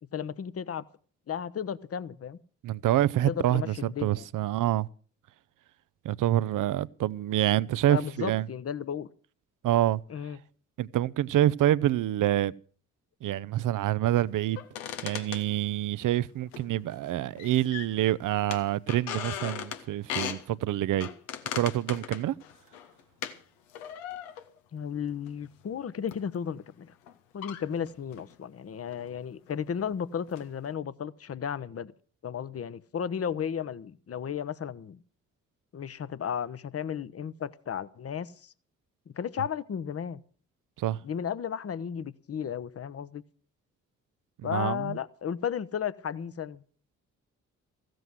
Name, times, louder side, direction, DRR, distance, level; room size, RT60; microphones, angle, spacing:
voice 1, 0.1-0.8 1.3-2.4 3.3-4.3 7.8-9.1 10.1-10.4 24.7-26.9 27.3-31.9 32.2-35.0 35.7-38.5 39.2-40.2 41.0-43.2 44.4-46.6, left 8 dB, 40° left, 0.9 m, -34 dB
voice 2, 2.6-4.9 6.0-8.5 9.6-10.0 10.8-12.5 13.2-14.6 15.0-21.1 21.5-22.3 40.8-41.0 44.4-45.0, right 13 dB, 55° right, 0.6 m, -27 dB
sound 1, 14.6-16.0 16.5-17.1 17.4-18.1 18.5-20.5 21.0-23.4 23.7-24.6 25.3-25.5 26.1-26.3 27.1-27.2 27.4-28.4 28.9-29.1 29.5-29.9 30.3-30.7, left 10 dB, 85° left, 1.0 m, -38 dB
15.0 x 7.8 x 7.9 m
hypercardioid pair, 40°, 38 cm